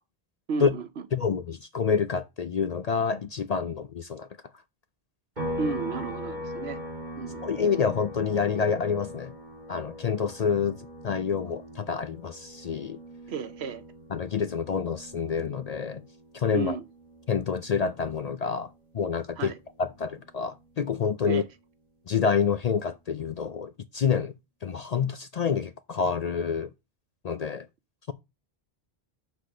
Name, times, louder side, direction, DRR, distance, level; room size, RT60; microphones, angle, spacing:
voice 1, 0.5-1.0 5.6-6.8 7.1-7.4 13.3-13.8 16.5-16.8 19.4-19.5 21.2-21.5, right 5 dB, 80° right, 1.1 m, -33 dB
voice 2, 1.1-4.3 7.4-9.3 9.7-10.8 11.0-13.0 14.1-16.0 16.3-16.8 17.3-18.7 18.9-19.5 19.8-21.4 22.1-24.3 24.6-26.7 27.2-27.7, left 6 dB, 55° left, 0.5 m, -27 dB
sound 1, 5.4-18.9 19.2-21.4, equal, 45° right, 3.3 m, -41 dB
6.1 x 5.0 x 6.6 m
omnidirectional pair, 1.1 m